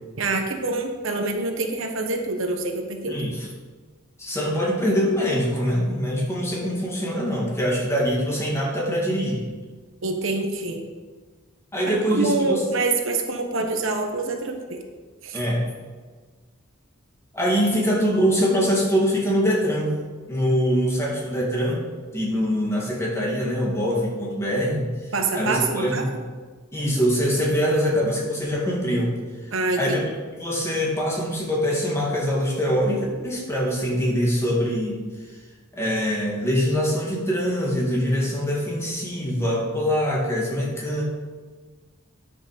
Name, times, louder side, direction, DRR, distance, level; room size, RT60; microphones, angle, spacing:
voice 1, 0.2-3.1 10.0-10.8 11.9-14.8 15.2-15.4 25.1-26.0 29.5-30.0, right 3 dB, 70° right, 4 dB, 1.2 m, -26 dB
voice 2, 3.1-3.5 4.2-9.5 11.7-12.6 15.3-15.7 17.3-19.9 20.3-21.8 22.1-24.9 25.3-26.2 26.7-29.1 29.8-30.0 30.4-35.0 35.7-41.0, equal, 15° left, -3 dB, 2.5 m, -23 dB
10.0 x 6.2 x 6.8 m, 1.4 s
head